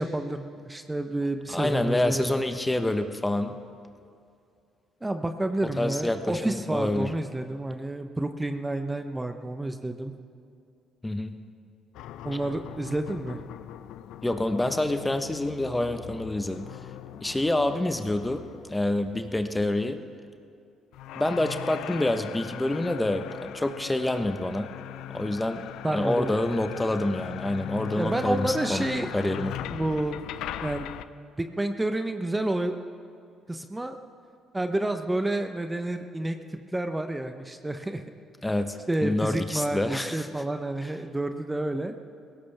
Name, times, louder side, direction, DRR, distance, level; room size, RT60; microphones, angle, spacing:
voice 1, 0.0-2.2 5.0-10.1 12.2-13.4 25.8-26.3 28.0-29.1 29.7-30.2 30.6-30.9 31.4-32.8 33.5-34.0 34.5-36.4 36.7-38.0 38.4-38.5 38.9-42.0, right 1 dB, 15° right, 7 dB, 1.0 m, -29 dB
voice 2, 1.5-3.6 5.8-7.1 11.0-11.4 14.2-16.7 17.2-18.4 18.7-20.0 21.1-24.7 25.1-25.6 25.9-28.9 29.1-29.6 38.4-40.3 40.8-40.9, left 1 dB, 15° left, 7 dB, 1.2 m, -27 dB
sound 1, 11.9-19.9 20.9-31.1, left 11 dB, 75° left, 0.5 m, -40 dB
20.5 x 17.0 x 3.5 m, 2.4 s
supercardioid pair, 60°, 0 cm